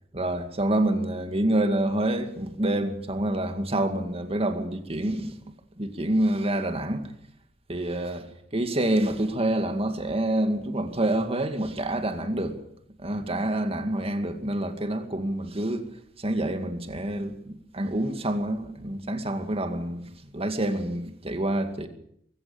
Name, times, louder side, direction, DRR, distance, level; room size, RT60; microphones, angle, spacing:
voice 1, 0.1-5.4 5.8-7.1 7.7-8.3 8.5-12.6 13.0-15.8 16.2-21.9, right 1 dB, 30° right, 2.2 m, -27 dB
23.5 x 16.0 x 7.2 m
head